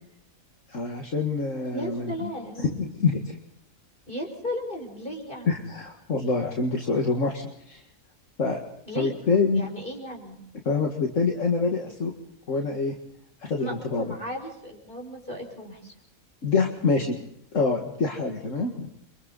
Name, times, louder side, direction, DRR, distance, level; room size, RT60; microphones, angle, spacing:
voice 1, 0.7-2.3 2.6-3.4 5.5-7.8 8.4-8.6 9.0-9.7 10.7-12.1 12.5-13.0 13.4-14.1 16.4-17.2 17.5-18.9, left 4 dB, 65° left, 1 dB, 2.3 m, -26 dB
voice 2, 1.7-2.7 4.1-5.6 8.9-9.2 9.5-10.4 13.6-15.9, equal, 40° left, 2 dB, 5.9 m, -35 dB
29.5 x 25.0 x 4.1 m, 0.72 s
omnidirectional pair, 1.4 m